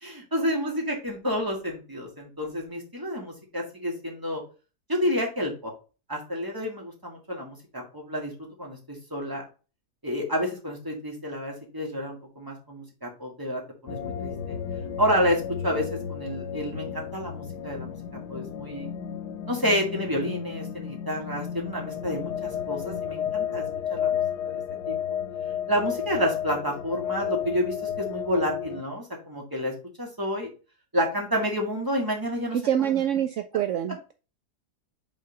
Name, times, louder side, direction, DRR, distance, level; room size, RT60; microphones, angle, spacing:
voice 1, 0.0-4.4 4.9-5.7 6.1-9.4 10.0-14.6 15.0-18.0 18.3-18.9 19.5-25.0 25.7-30.5 30.9-32.6 32.9-33.0, equal, 15° right, 0 dB, 1.9 m, -29 dB
sound 1, 13.9-28.8, left 9 dB, 90° left, 1.3 m, -32 dB
voice 2, 32.6-34.1, right 10 dB, 70° right, 8 dB, 0.7 m, -26 dB
5.2 x 4.1 x 5.1 m, 0.33 s
omnidirectional pair, 1.7 m